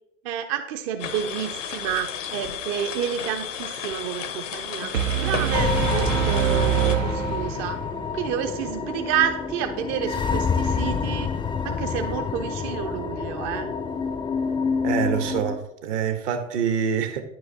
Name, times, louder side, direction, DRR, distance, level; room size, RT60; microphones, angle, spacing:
voice 1, 0.2-7.8 8.1-11.3 11.6-13.7, right 9 dB, 40° right, 0.5 m, -29 dB
sound 1, 1.0-7.0, left 8 dB, 75° left, 0.7 m, -33 dB
sound 2, 4.9-7.9, right 9 dB, 85° right, 0.5 m, -24 dB
sound 3, 5.5-15.6, left 5 dB, 10° left, 0.4 m, -28 dB
voice 2, 14.8-17.2, right 7 dB, 65° right, 0.9 m, -26 dB
9.5 x 4.7 x 2.7 m
figure-of-eight pair, 75°, 38 cm